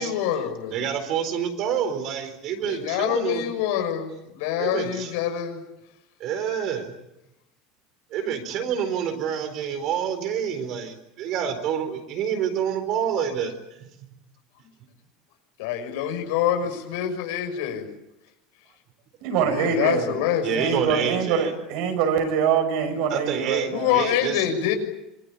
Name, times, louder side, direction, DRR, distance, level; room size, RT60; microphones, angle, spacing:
voice 1, 0.0-0.9 2.6-5.6 15.6-17.9 19.4-20.9 23.7-24.7, left 10 dB, 75° left, 5 dB, 6.3 m, -26 dB
voice 2, 0.7-3.5 4.6-5.1 6.2-6.9 8.1-13.5 13.8-13.9 20.4-21.5 23.1-24.4, right 8 dB, 40° right, 8 dB, 4.3 m, -27 dB
voice 3, 19.2-20.2 20.5-23.9, right 7 dB, 55° right, 6 dB, 6.4 m, -24 dB
27.0 x 23.0 x 8.6 m, 0.88 s
cardioid pair, 175°, 0 cm